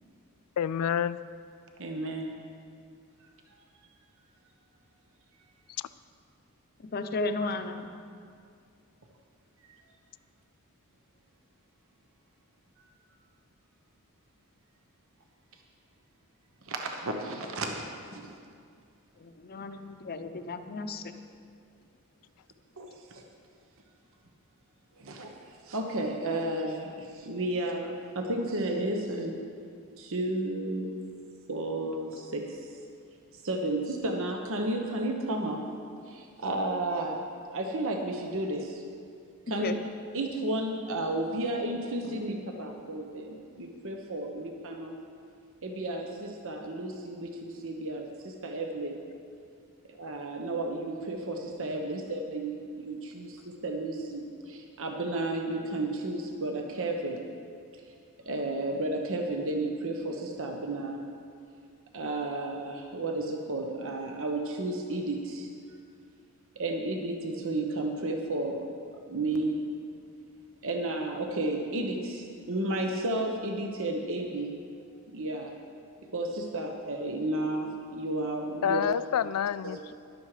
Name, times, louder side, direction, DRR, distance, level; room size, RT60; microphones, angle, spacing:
voice 1, 0.6-1.2 78.6-79.9, left 8 dB, 75° left, 16 dB, 0.3 m, -28 dB
voice 2, 1.8-2.3 16.6-17.9 18.1-18.3 22.8-23.2 25.0-25.3 25.7-29.4 30.0-30.9 31.5-32.6 33.4-35.6 36.1-37.2 37.5-38.8 39.5-39.7 40.1-45.0 45.6-49.0 49.9-57.2 58.3-61.0 61.9-65.5 66.5-68.6 69.1-69.6 70.6-74.6 75.1-75.5 76.1-78.9 79.6-79.8, right 2 dB, 65° right, 3 dB, 1.2 m, -32 dB
voice 3, 6.8-7.9 19.2-21.1 39.6-39.8, left 3 dB, 45° left, 8 dB, 0.7 m, -34 dB
13.5 x 11.5 x 4.9 m, 2.3 s
head